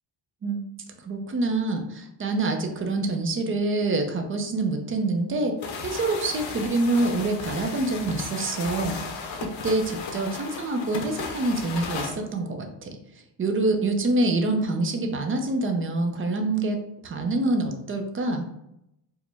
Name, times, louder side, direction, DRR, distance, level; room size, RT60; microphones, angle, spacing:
voice 1, 1.0-5.6 5.8-9.0 9.4-12.9 13.4-18.5, right 2 dB, 30° right, 4 dB, 0.5 m, -26 dB
sound 1, 5.6-12.2, left 4 dB, 85° left, 0.8 m, -35 dB
4.9 x 2.1 x 3.3 m, 0.81 s
cardioid pair, 165°, 45 cm